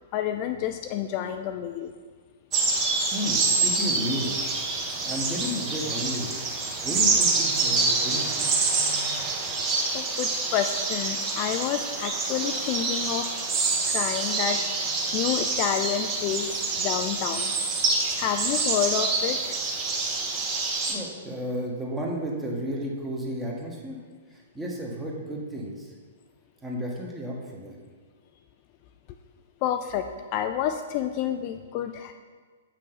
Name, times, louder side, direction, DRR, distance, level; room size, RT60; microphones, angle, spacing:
voice 1, 0.1-1.9 9.9-13.3 13.9-17.5 18.2-19.6 29.6-32.1, left 9 dB, 35° left, 6 dB, 0.3 m, -29 dB
sound 1, 2.5-20.9, right 3 dB, 25° right, 1.1 m, -26 dB
voice 2, 3.1-6.3 6.8-8.5 20.9-24.0 24.3-25.9 26.6-27.8, equal, 10° right, -2 dB, 1.4 m, -33 dB
7.6 x 5.9 x 3.9 m, 1.6 s
figure-of-eight pair, 110°, 0 cm